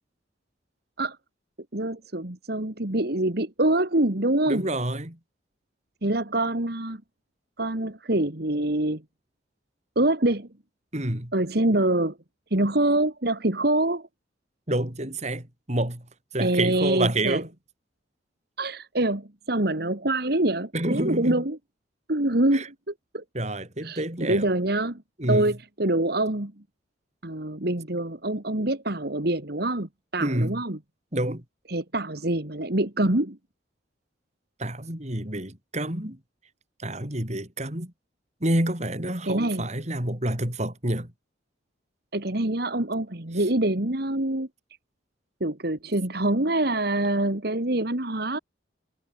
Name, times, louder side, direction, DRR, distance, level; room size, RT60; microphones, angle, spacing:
voice 1, 1.7-4.7 6.0-7.0 7.6-9.0 10.0-10.5 11.3-12.2 12.5-14.1 16.4-17.4 18.6-21.6 22.1-23.2 23.8-25.0 25.3-26.5 27.2-30.8 31.7-33.4 39.2-39.7 42.1-44.5 45.4-48.4, right 1 dB, 55° right, 2.2 m, -25 dB
voice 2, 4.5-5.2 10.9-11.3 14.7-16.1 16.3-17.5 20.7-21.4 22.5-22.7 23.3-24.5 25.2-25.5 30.2-30.6 31.1-31.4 34.6-36.2 36.8-37.9 38.4-41.1, right 1 dB, 40° right, 4.5 m, -28 dB
head